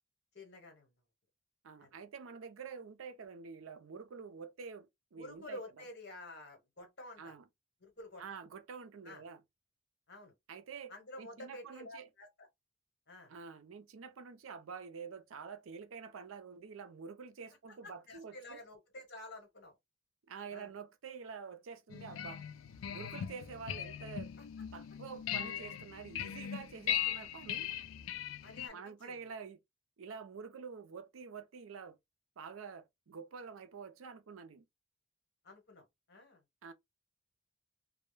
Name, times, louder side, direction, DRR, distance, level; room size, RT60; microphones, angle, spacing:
voice 1, 0.3-0.9 1.8-1.9 5.2-7.3 7.8-8.2 9.0-9.2 10.1-10.3 10.9-12.5 13.1-13.3 17.8-19.8 20.5-20.7 28.4-29.3 35.4-36.4, left 1 dB, 55° left, 1.1 m, -50 dB
voice 2, 1.6-5.6 7.2-7.4 8.2-9.4 10.5-12.1 13.3-18.6 20.3-22.4 22.9-24.3 24.7-27.7 28.7-29.6 30.0-32.0 32.4-34.7 36.6-36.7, right 5 dB, 80° right, 0.5 m, -48 dB
sound 1, 21.9-28.7, left 10 dB, 75° left, 0.3 m, -39 dB
2.2 x 2.1 x 3.1 m
head